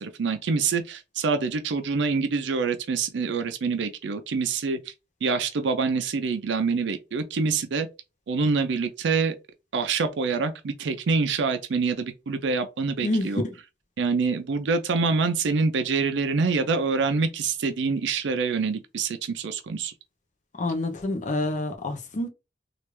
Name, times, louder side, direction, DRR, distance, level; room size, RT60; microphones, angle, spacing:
voice 1, 0.0-4.8 5.2-7.9 8.3-9.4 9.7-13.4 14.0-19.9, right 4 dB, 75° right, 0.4 m, -26 dB
voice 2, 13.0-13.5 20.6-22.3, left 1 dB, 45° left, 0.7 m, -27 dB
3.2 x 2.4 x 3.0 m
head